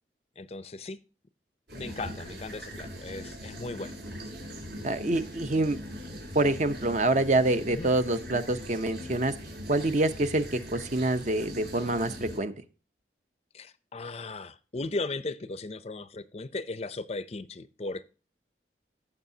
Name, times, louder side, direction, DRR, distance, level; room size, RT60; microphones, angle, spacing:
voice 1, 0.4-1.0 1.7-3.9 7.7-7.9 13.5-18.0, left 3 dB, 35° left, 0.5 m, -37 dB
sound 1, 1.7-12.4, equal, 70° right, 4.6 m, -41 dB
voice 2, 4.8-5.8 6.3-9.3 9.7-12.5, right 2 dB, 40° right, 0.7 m, -26 dB
15.0 x 7.1 x 2.7 m
head